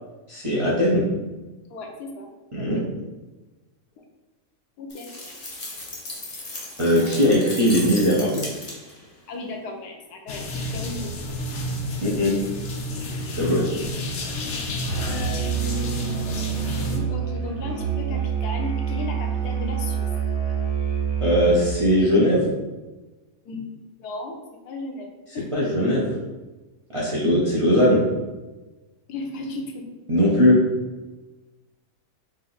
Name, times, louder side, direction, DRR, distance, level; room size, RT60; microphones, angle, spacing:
voice 1, 0.3-1.0 2.5-2.8 6.8-8.4 12.0-12.3 13.4-13.6 21.2-22.5 25.5-26.1 26.9-28.0 30.1-30.6, equal, 35° right, -7 dB, 0.6 m, -19 dB
voice 2, 1.7-2.9 4.8-5.3 9.3-11.1 13.6-13.7 15.1-20.1 23.4-23.7 24.0-24.4 24.6-25.5 29.1-29.8, left 3 dB, 85° left, 2 dB, 1.2 m, -35 dB
sound 1, 4.9-9.1, left 2 dB, 35° left, 0.6 m, -36 dB
sound 2, 10.3-17.0, left 1 dB, 60° left, 0.8 m, -30 dB
Musical instrument, 14.8-21.9, right 8 dB, 80° right, 1.4 m, -27 dB
3.8 x 2.6 x 4.1 m, 1.2 s
omnidirectional pair, 1.6 m